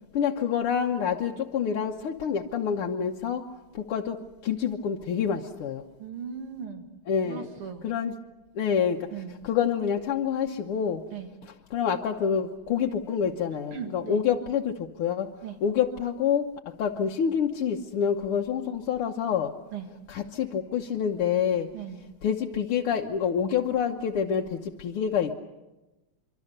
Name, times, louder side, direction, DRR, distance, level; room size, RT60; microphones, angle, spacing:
voice 1, 0.2-3.4 3.8-4.2 4.4-5.8 7.1-7.5 7.8-8.1 8.6-9.0 9.4-11.0 11.7-15.3 15.6-16.5 16.8-19.5 20.1-21.7 22.2-25.3, left 7 dB, 90° left, 1 dB, 2.0 m, -27 dB
voice 2, 6.0-6.9 7.2-7.9 9.1-9.4 11.1-11.3 13.7-14.2 15.4-15.6 19.7-19.9 21.7-22.0, right 7 dB, 90° right, 5 dB, 3.1 m, -38 dB
25.0 x 25.0 x 6.7 m, 1.1 s
omnidirectional pair, 2.4 m